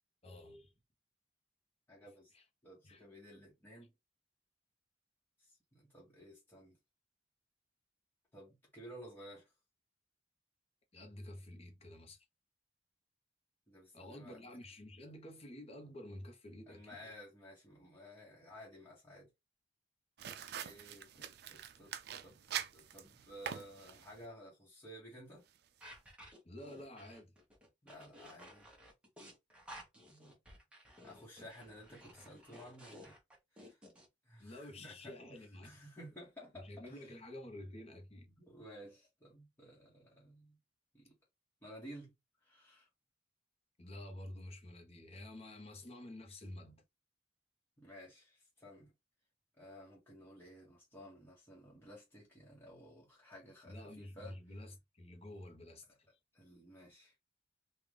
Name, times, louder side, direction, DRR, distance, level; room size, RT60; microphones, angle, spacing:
voice 1, 0.2-0.7 2.3-2.4 2.8-3.0 10.9-12.2 13.9-17.1 26.4-27.3 32.2-32.3 34.4-35.7 36.6-38.4 43.8-46.8 53.6-56.1, left 1 dB, 35° left, 1.0 m, -50 dB
voice 2, 1.9-2.3 2.6-3.9 5.4-6.8 8.3-9.5 13.7-14.5 16.7-19.3 20.6-22.0 22.2-22.4 22.7-25.4 27.8-28.7 30.1-30.4 31.0-33.2 33.5-33.8 34.2-35.2 35.6-37.1 38.4-40.6 40.9-41.2 41.6-42.1 42.4-42.9 47.8-48.9 49.6-54.4 56.3-57.1, equal, 10° left, 1.3 m, -54 dB
sound 1, 20.2-24.3, right 9 dB, 60° right, 0.4 m, -45 dB
sound 2, 25.8-34.1, equal, 5° right, 1.1 m, -55 dB
3.8 x 2.5 x 3.3 m
head